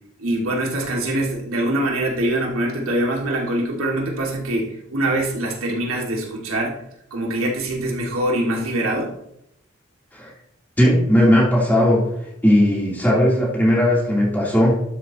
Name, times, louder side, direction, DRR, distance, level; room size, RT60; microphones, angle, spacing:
voice 1, 0.2-6.8 7.1-9.1, right 1 dB, 85° right, -1 dB, 2.3 m, -23 dB
voice 2, 10.8-12.1 12.4-14.7, equal, 10° left, -6 dB, 3.3 m, -17 dB
12.0 x 8.0 x 3.0 m, 0.78 s
head